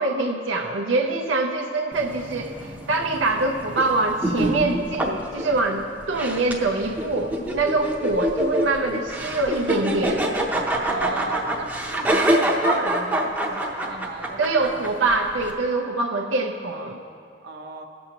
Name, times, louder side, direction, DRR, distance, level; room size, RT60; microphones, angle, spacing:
voice 1, 0.0-10.2 14.4-17.0, right 2 dB, 85° right, 1 dB, 0.6 m, -24 dB
sound 1, 1.9-15.5, right 1 dB, 10° right, 0.7 m, -26 dB
voice 2, 10.9-14.9 17.4-17.9, right 2 dB, 60° right, 2 dB, 0.8 m, -35 dB
18.0 x 7.0 x 2.9 m, 2.4 s
head